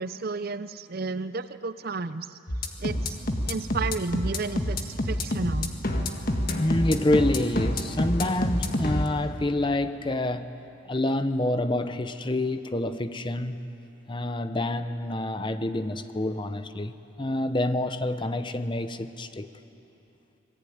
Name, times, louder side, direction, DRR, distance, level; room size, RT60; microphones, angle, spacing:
voice 1, 0.0-2.3 2.8-3.2 3.5-5.7, right 3 dB, 45° right, 0.6 m, -32 dB
sound 1, 2.5-9.1, left 1 dB, 45° left, 1.8 m, -27 dB
voice 2, 6.6-10.5 10.9-13.7 14.1-19.5, left 1 dB, 20° left, 0.8 m, -27 dB
26.5 x 20.5 x 9.5 m
head